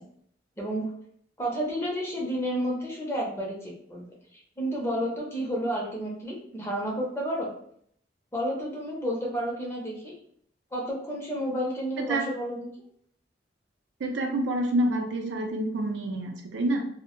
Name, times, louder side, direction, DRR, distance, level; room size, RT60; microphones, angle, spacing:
voice 1, 0.6-0.9 1.4-4.1 4.3-7.5 8.3-10.1 10.7-12.7, equal, 15° left, -3 dB, 0.5 m, -31 dB
voice 2, 14.0-16.8, right 1 dB, 80° right, 3 dB, 0.4 m, -27 dB
2.1 x 2.0 x 2.9 m, 0.64 s
head